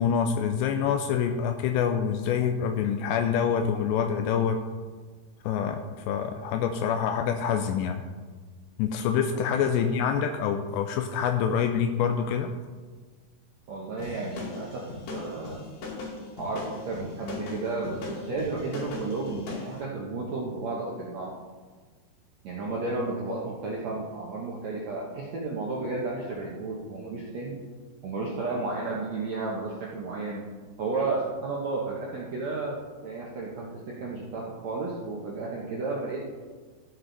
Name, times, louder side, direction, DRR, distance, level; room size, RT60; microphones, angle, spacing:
voice 1, 0.0-4.6 5.4-5.8 6.1-8.0 8.8-12.5, left 7 dB, 85° left, 6 dB, 2.7 m, -26 dB
voice 2, 9.3-10.1 13.7-14.8 15.1-15.6 16.4-21.3 22.4-27.6 28.0-30.4 30.8-32.8 33.0-36.2, right 3 dB, 80° right, -4 dB, 1.5 m, -33 dB
sound 1, 14.0-19.7, left 3 dB, 65° left, 4.0 m, -38 dB
13.5 x 9.0 x 4.0 m, 1.5 s
omnidirectional pair, 5.1 m